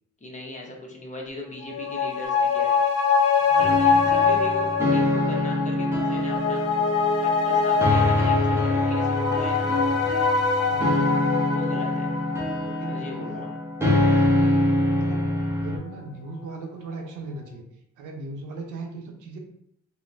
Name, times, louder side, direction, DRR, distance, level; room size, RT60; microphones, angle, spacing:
voice 1, 0.2-2.7 3.5-6.6 7.2-9.7 11.5-12.1 12.8-13.5, left 1 dB, 25° left, -1 dB, 0.8 m, -38 dB
sound 1, 1.6-14.5 14.8-14.9, left 5 dB, 55° left, 0.5 m, -24 dB
voice 2, 3.4-3.9 10.7-11.1 12.6-13.5 14.0-14.6 14.9-15.2 15.6-17.6 18.0-19.4, right 3 dB, 90° right, 2 dB, 0.7 m, -38 dB
sound 2, 3.6-15.8, left 1 dB, 10° right, 0.7 m, -25 dB
3.8 x 2.1 x 2.5 m, 0.73 s
cardioid pair, 90°, 30 cm